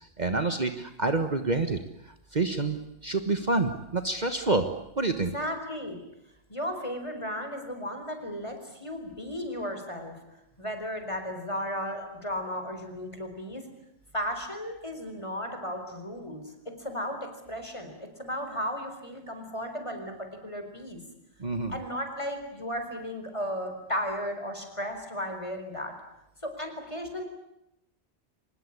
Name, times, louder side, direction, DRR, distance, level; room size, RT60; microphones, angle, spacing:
voice 1, 0.2-1.8 2.3-4.7 5.0-5.3 21.4-21.7, right 3 dB, 40° right, 7 dB, 1.5 m, -27 dB
voice 2, 5.3-6.0 6.5-10.2 10.6-13.7 14.1-21.0 21.7-25.9 26.4-27.2, equal, 25° left, 6 dB, 4.5 m, -35 dB
25.0 x 20.5 x 10.0 m, 0.84 s
omnidirectional pair, 1.2 m